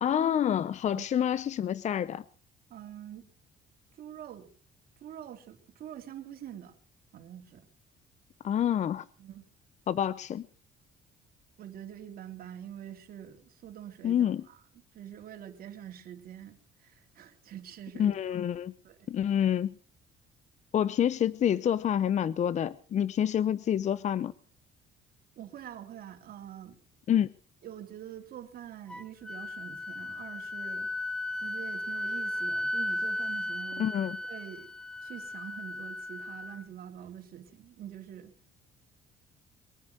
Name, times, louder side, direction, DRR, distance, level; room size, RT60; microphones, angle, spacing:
voice 1, 0.0-2.2 8.4-9.0 9.9-10.5 14.0-14.4 18.0-18.7 19.1-19.7 20.7-24.3 27.1-27.3 33.8-34.2, left 9 dB, 45° left, 0.7 m, -27 dB
voice 2, 2.7-3.2 4.0-4.5 5.0-6.8 7.1-7.7 9.2-9.4 11.6-14.6 14.9-18.2 18.8-19.1 25.3-26.8 27.6-30.9 31.4-33.9 34.2-34.7 35.0-38.3, right 10 dB, 60° right, 3.1 m, -45 dB
Wind instrument woodwind instrument, 28.9-36.6, left 1 dB, 5° left, 0.8 m, -35 dB
22.5 x 9.8 x 6.5 m
cardioid pair, 110°, 17 cm